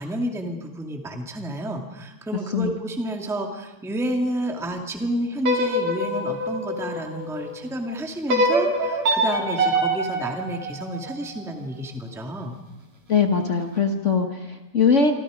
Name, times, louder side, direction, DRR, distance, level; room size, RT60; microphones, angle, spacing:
voice 1, 0.0-12.6, right 1 dB, ahead, 3 dB, 1.8 m, -30 dB
sound 1, 5.4-7.6 8.3-11.4, right 1 dB, 60° right, 4.7 m, -24 dB
voice 2, 13.1-15.1, left 5 dB, 80° left, 4 dB, 0.6 m, -21 dB
27.0 x 25.5 x 5.1 m, 1.0 s
omnidirectional pair, 3.4 m